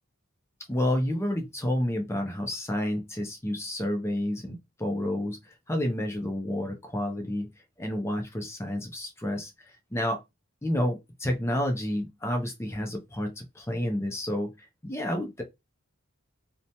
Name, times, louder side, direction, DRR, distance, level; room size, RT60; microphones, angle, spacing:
voice 1, 0.7-7.5 7.8-9.5 9.9-10.2 10.6-14.5 14.8-15.4, left 1 dB, 10° left, 0.5 m, -30 dB
3.0 x 2.1 x 2.7 m
head